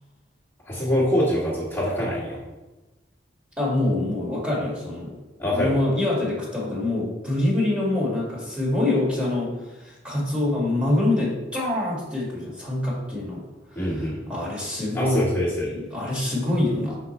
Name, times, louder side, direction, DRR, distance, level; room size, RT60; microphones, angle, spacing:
voice 1, 0.6-2.4 5.4-5.8 13.7-14.2 14.9-15.8, equal, 15° left, -9 dB, 1.5 m, -24 dB
voice 2, 3.6-5.2 5.5-13.4 13.7-15.2 15.6-17.0, left 1 dB, 5° right, -5 dB, 1.8 m, -25 dB
5.4 x 4.1 x 4.2 m, 1.1 s
head